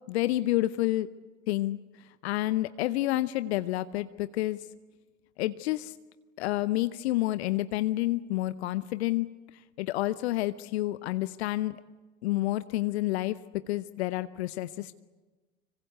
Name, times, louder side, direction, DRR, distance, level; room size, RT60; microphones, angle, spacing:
voice 1, 0.1-1.1 1.5-4.7 5.4-6.0 6.4-9.3 9.8-11.8 12.2-13.4 13.7-15.0, left 16 dB, 60° left, 15 dB, 0.8 m, -29 dB
25.5 x 24.0 x 8.1 m, 1.3 s
figure-of-eight pair, 70°, 37 cm